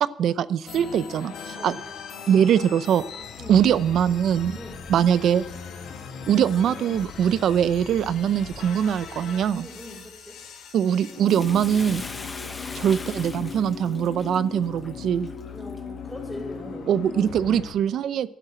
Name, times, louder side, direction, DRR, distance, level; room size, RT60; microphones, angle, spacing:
voice 1, 0.0-1.7 2.3-3.0 3.5-4.6 4.9-5.4 6.3-9.7 10.7-12.0 12.7-15.3 16.9-18.3, right 9 dB, 65° right, 16 dB, 0.6 m, -22 dB
sound 1, 0.7-17.7, left 6 dB, 80° left, 2.2 m, -39 dB
voice 2, 4.5-4.8 9.5-10.4 15.5-17.5, equal, 5° right, -9 dB, 4.4 m, -41 dB
Bathtub (filling or washing), 11.3-15.8 16.3-16.4, left 3 dB, 25° left, 0.9 m, -40 dB
12.0 x 7.8 x 9.2 m, 0.85 s
cardioid pair, 135°, 0 cm